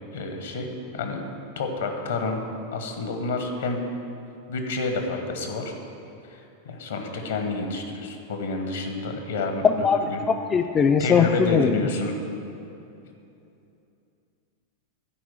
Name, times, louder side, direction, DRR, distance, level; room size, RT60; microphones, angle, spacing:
voice 1, 0.1-1.3 1.6-2.4 2.7-3.8 4.5-5.7 6.3-10.2 11.0-12.2, left 3 dB, 65° left, 4 dB, 1.2 m, -29 dB
voice 2, 9.6-10.0 10.3-11.7, left 6 dB, 25° left, 6 dB, 0.4 m, -20 dB
10.0 x 4.8 x 7.6 m, 2.8 s
figure-of-eight pair, 90°, 0 cm